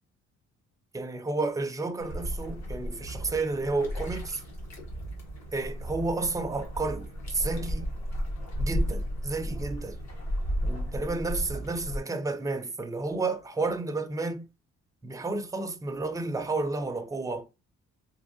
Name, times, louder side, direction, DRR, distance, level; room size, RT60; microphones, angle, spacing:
voice 1, 0.9-4.4 5.5-7.9 8.6-10.0 10.6-14.5 15.0-17.5, right 3 dB, 10° right, 0.5 m, -31 dB
sound 1, 2.0-12.0, equal, 65° left, 1.6 m, -34 dB
3.5 x 3.0 x 2.6 m
cardioid pair, 90°, 30 cm